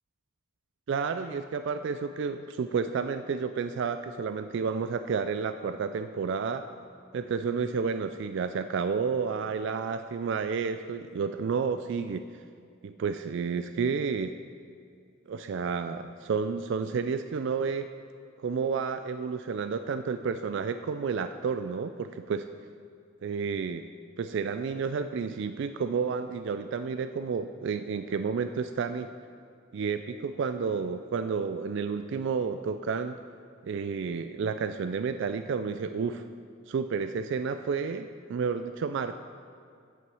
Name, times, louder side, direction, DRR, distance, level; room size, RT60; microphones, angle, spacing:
voice 1, 0.9-6.6 7.1-12.2 12.8-14.4 15.3-17.9 18.4-22.5 23.2-23.9 24.2-29.1 29.7-33.2 33.6-36.3 36.7-39.2, right 5 dB, 60° right, 10 dB, 0.3 m, -31 dB
8.5 x 7.8 x 6.9 m, 2.3 s
head